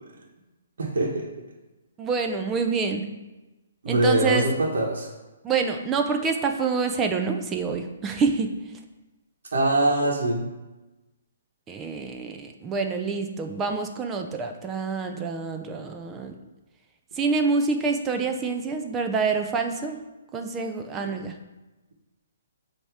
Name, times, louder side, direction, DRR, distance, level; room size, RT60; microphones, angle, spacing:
voice 1, 0.8-1.3 3.8-5.1 9.5-10.4 21.0-21.2, right 1 dB, 70° right, -2 dB, 1.2 m, -23 dB
voice 2, 2.0-3.0 3.9-4.5 5.4-8.5 11.7-16.3 17.2-20.0 20.3-21.3, right 4 dB, 15° right, 5 dB, 0.5 m, -27 dB
7.7 x 2.9 x 4.8 m, 1.1 s
hypercardioid pair, 145°, 0 cm